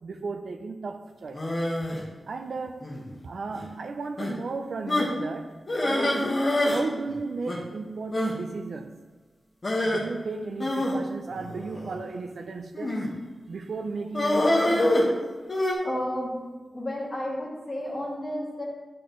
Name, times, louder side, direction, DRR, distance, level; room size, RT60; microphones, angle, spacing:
voice 1, 0.0-1.6 2.3-2.9 3.2-6.3 6.6-9.1 9.8-13.1 13.5-15.3, right 4 dB, 75° right, 0.6 m, -35 dB
sound 1, 1.3-2.0 2.8-3.1 3.5-3.7 4.2-4.3 4.9-5.2 5.7-6.8 7.1-7.2 7.5-7.6 8.1-8.3 9.6-10.0 10.6-11.9 12.7-13.2 14.1-15.7, left 1 dB, 40° left, 1.5 m, -25 dB
voice 2, 15.8-16.3 16.7-18.6, left 1 dB, 25° left, 2.4 m, -32 dB
11.0 x 6.0 x 3.1 m
wide cardioid pair, 130°, 0 cm